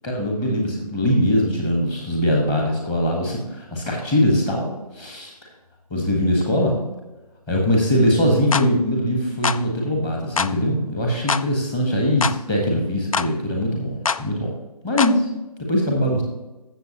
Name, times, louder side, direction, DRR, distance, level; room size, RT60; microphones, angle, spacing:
voice 1, 0.0-5.3 5.9-6.8 7.5-14.5 14.8-15.3 15.7-16.2, equal, 10° left, 0 dB, 1.3 m, -21 dB
sound 1, 8.5-8.7 9.4-9.6 10.4-10.5 11.3-11.5 12.2-12.4 13.1-13.3 14.1-14.2 15.0-15.2, left 5 dB, 55° left, 0.4 m, -23 dB
15.5 x 6.8 x 2.9 m, 1.1 s
figure-of-eight pair, 155°, 20 cm